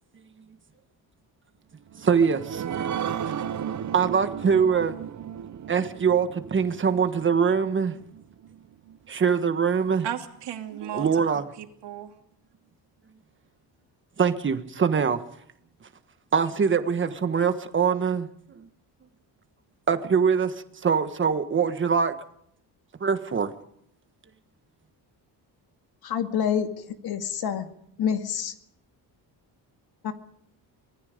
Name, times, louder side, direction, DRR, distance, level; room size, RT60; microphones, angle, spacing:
sound 1, 1.9-9.0 9.4-9.5 9.9-10.0, right 8 dB, 45° right, 1.0 m, -35 dB
voice 1, 2.0-2.6 3.9-5.0 5.7-7.9 9.1-10.0 10.9-11.4 14.2-15.2 16.3-18.7 19.9-22.1 23.0-23.5, right 6 dB, 30° right, 1.5 m, -23 dB
voice 2, 10.0-12.2, right 10 dB, 80° right, 2.8 m, -36 dB
voice 3, 26.0-26.7 27.0-27.7 28.0-28.5 30.0-30.1, left 8 dB, 60° left, 2.2 m, -27 dB
25.0 x 20.0 x 5.2 m
cardioid pair, 170°, 41 cm